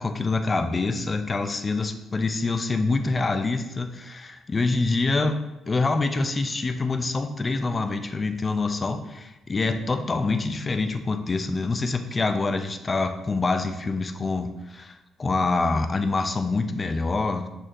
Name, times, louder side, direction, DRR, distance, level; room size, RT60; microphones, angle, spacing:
voice 1, 0.0-17.5, left 3 dB, 30° left, 8 dB, 0.5 m, -26 dB
6.4 x 4.3 x 3.7 m, 0.99 s
cardioid pair, 90°, 0 cm